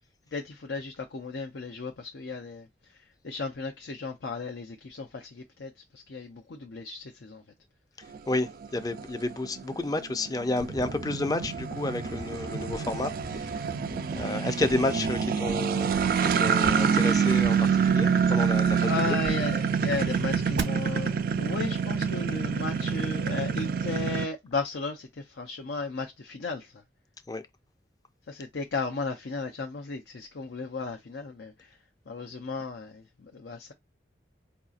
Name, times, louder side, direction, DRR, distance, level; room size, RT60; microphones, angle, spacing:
voice 1, 0.3-2.7 3.2-7.4 13.8-14.1 18.8-26.7 28.3-31.5 32.1-33.0 33.3-33.7, left 4 dB, 85° left, 0.6 m, -35 dB
sound 1, 8.1-24.2, right 6 dB, 50° right, 0.3 m, -27 dB
voice 2, 8.3-13.5 14.1-19.2 27.3-27.4, left 2 dB, 20° left, 0.4 m, -31 dB
sound 2, 10.6-20.6, right 3 dB, 85° right, 0.7 m, -37 dB
4.7 x 2.7 x 2.4 m
head